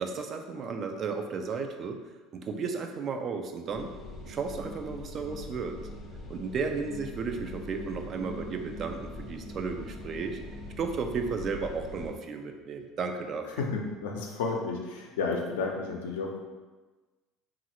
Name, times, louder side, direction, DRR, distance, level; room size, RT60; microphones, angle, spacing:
voice 1, 0.0-2.0 2.3-3.9 4.3-5.8 6.3-10.4 10.8-13.6, right 5 dB, 45° right, 5 dB, 0.3 m, -34 dB
sound 1, 3.7-12.1, left 1 dB, 40° left, 0.5 m, -42 dB
voice 2, 13.5-16.4, left 4 dB, 90° left, 0 dB, 0.5 m, -32 dB
3.0 x 2.4 x 2.8 m, 1.2 s
supercardioid pair, 90°, 0 cm